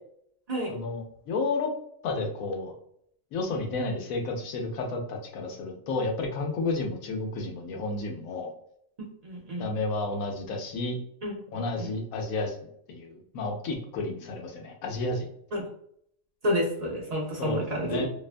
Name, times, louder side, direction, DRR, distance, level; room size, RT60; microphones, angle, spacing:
voice 1, 0.7-1.7 2.0-2.7 3.3-8.5 9.6-11.0 11.5-12.5 12.9-15.3 17.4-18.1, left 3 dB, 90° left, 1 dB, 1.1 m, -31 dB
voice 2, 9.2-9.7 11.2-11.3 11.8-11.9 15.5-15.7 16.4-18.1, equal, 60° right, -2 dB, 0.4 m, -29 dB
2.7 x 2.1 x 2.4 m, 0.69 s
omnidirectional pair, 1.4 m